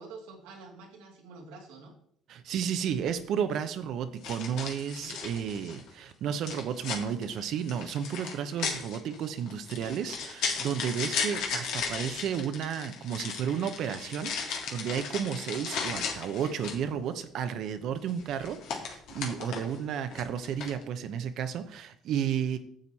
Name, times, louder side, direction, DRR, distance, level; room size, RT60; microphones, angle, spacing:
voice 1, 0.0-1.9 4.8-5.1, right 3 dB, 90° right, 1 dB, 2.2 m, -47 dB
voice 2, 2.3-22.6, right 8 dB, 65° right, 9 dB, 0.9 m, -32 dB
sound 1, 2.9-3.1 4.2-5.9 6.4-16.9 18.1-19.8 20.1-20.8, left 6 dB, 75° left, 1.9 m, -36 dB
9.0 x 7.4 x 4.2 m, 0.64 s
supercardioid pair, 85°, 0 cm